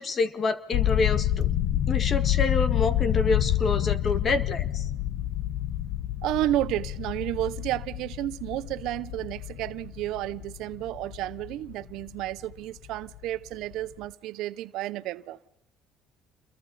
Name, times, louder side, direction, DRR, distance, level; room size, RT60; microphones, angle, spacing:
voice 1, 0.0-1.5 1.9-4.9, left 3 dB, 35° left, 1.8 m, -27 dB
sound 1, 0.7-12.6 12.9-13.2 13.5-13.7, left 12 dB, 65° left, 0.9 m, -28 dB
voice 2, 6.2-15.4, right 14 dB, 70° right, 0.8 m, -31 dB
29.0 x 22.5 x 4.2 m
cardioid pair, 120°, 0 cm